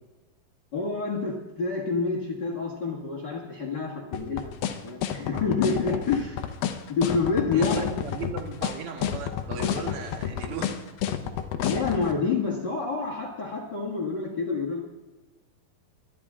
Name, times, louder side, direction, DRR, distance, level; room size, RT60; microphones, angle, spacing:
voice 1, 0.7-4.5 4.8-6.4 7.0-7.8 11.6-14.8, left 4 dB, 40° left, 0 dB, 1.7 m, -28 dB
sound 1, 4.1-12.0, left 10 dB, 90° left, 2.8 m, -29 dB
voice 2, 7.5-10.8, right 5 dB, 50° right, 3 dB, 2.1 m, -36 dB
22.5 x 11.0 x 3.7 m, 1.2 s
omnidirectional pair, 4.1 m